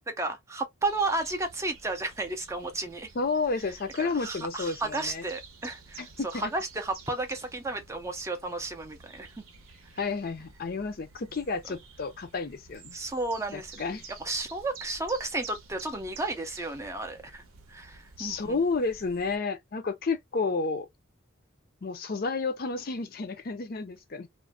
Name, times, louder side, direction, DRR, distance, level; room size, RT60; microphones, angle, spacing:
voice 1, 0.1-3.1 4.0-6.1 6.3-9.4 11.7-11.8 12.9-13.8 14.2-17.4 17.7-18.6, right 2 dB, 15° right, 0.4 m, -33 dB
sound 1, 0.8-19.4, right 5 dB, 85° right, 0.7 m, -50 dB
voice 2, 3.2-5.2 6.0-6.5 10.0-13.0 13.5-14.0 18.2-20.9 21.8-24.3, left 4 dB, 45° left, 0.5 m, -31 dB
2.4 x 2.1 x 3.4 m
head